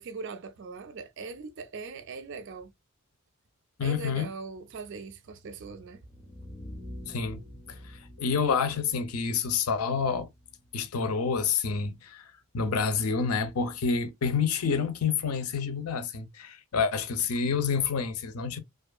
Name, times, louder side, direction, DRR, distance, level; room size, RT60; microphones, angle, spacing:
voice 1, 0.0-2.7 3.8-6.0, right 4 dB, 55° right, 0.4 m, -40 dB
voice 2, 3.8-4.3 7.1-7.4 7.7-7.8 8.2-10.3 10.7-12.2 12.5-18.6, left 5 dB, 90° left, 0.5 m, -28 dB
sound 1, 5.9-11.9, left 1 dB, 20° left, 0.5 m, -47 dB
2.6 x 2.3 x 2.2 m
head